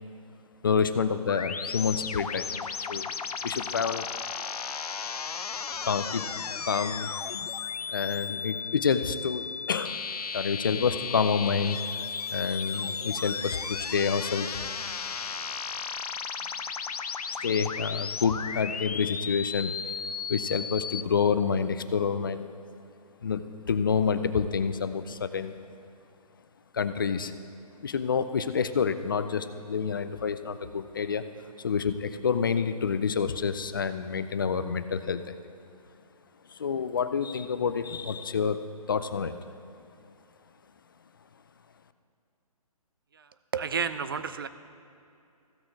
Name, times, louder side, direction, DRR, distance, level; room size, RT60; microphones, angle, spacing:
voice 1, 0.6-3.1 3.4-4.1 5.8-6.3 6.6-7.1 7.9-10.0 10.3-11.8 12.3-14.6 17.4-19.7 20.3-22.5 23.2-25.5 26.7-27.3 27.8-31.2 31.6-35.4 36.5-38.6 38.9-39.3, left 6 dB, 35° left, 11 dB, 0.4 m, -28 dB
sound 1, 1.3-21.0, left 6 dB, 85° left, 0.6 m, -35 dB
voice 2, 43.1-44.5, right 6 dB, 40° right, 12 dB, 0.4 m, -32 dB
15.0 x 6.4 x 4.6 m, 2.6 s
hypercardioid pair, 165°, 19 cm